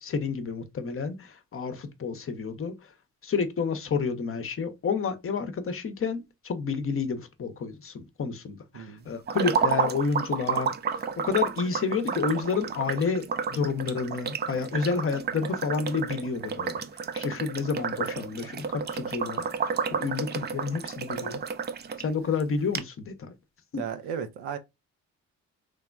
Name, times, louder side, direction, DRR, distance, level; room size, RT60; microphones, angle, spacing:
voice 1, 0.0-2.9 3.2-10.7 11.2-16.8 17.1-21.4 22.0-23.3 23.7-23.8, left 5 dB, 35° left, 0.6 m, -30 dB
voice 2, 8.7-9.1 17.6-17.8 23.8-24.6, right 7 dB, 85° right, 0.5 m, -35 dB
sound 1, 9.3-22.0 22.4-22.5 22.7-22.8, right 6 dB, 30° right, 0.4 m, -31 dB
3.2 x 2.1 x 2.3 m
hypercardioid pair, 50°, 36 cm